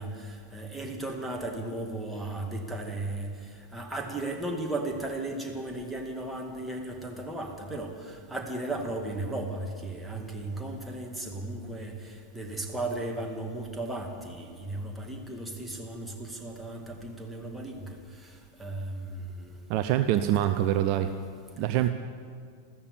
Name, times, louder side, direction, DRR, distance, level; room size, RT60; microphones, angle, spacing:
voice 1, 0.0-3.3 3.7-18.0 18.2-18.3 18.6-19.6 20.3-20.5, right 2 dB, 5° right, 1 dB, 2.1 m, -35 dB
voice 2, 19.7-21.1 21.6-21.9, right 12 dB, 45° right, 9 dB, 0.6 m, -25 dB
14.0 x 13.5 x 7.3 m, 2.1 s
figure-of-eight pair, 90°, 0 cm